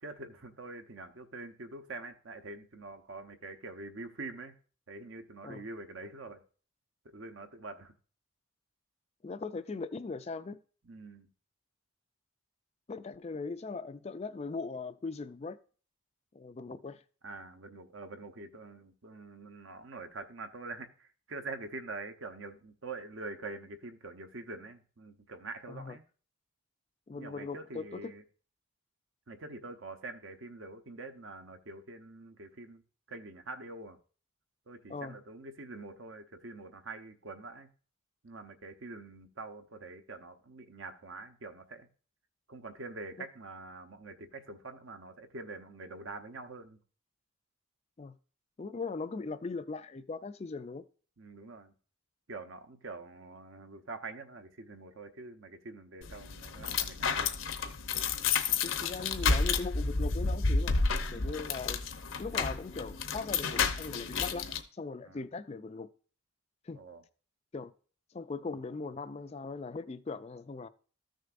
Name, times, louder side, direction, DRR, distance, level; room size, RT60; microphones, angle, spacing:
voice 1, 0.0-4.6 4.9-6.4 7.0-7.9 10.8-11.3 17.2-26.0 27.2-28.2 29.3-32.8 33.1-34.0 34.7-37.7 38.2-41.9 42.5-46.8 51.2-51.7 52.3-57.4 61.1-61.4 65.0-65.2 66.8-67.0, right 3 dB, 65° right, 0.9 m, -45 dB
voice 2, 9.2-10.6 12.9-15.6 16.3-17.0 25.7-26.0 27.1-28.0 34.9-35.2 48.0-48.2 48.6-50.9 58.0-58.1 58.6-60.8 61.1-61.8 62.2-65.9 66.6-66.8 67.5-67.7 68.1-70.7, left 4 dB, 30° left, 0.3 m, -39 dB
sound 1, 56.0-64.6, left 4 dB, 70° left, 0.7 m, -31 dB
14.0 x 6.4 x 2.5 m
head